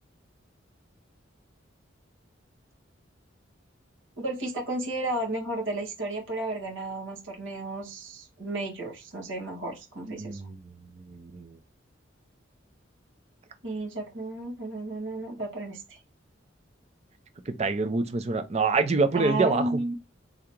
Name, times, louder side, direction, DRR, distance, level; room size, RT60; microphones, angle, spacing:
voice 1, 4.2-10.4 13.6-16.0 19.1-19.9, right 2 dB, 80° right, 1.6 m, -33 dB
voice 2, 10.1-11.6 17.5-19.8, right 4 dB, 35° right, 0.5 m, -27 dB
3.5 x 2.9 x 3.5 m
head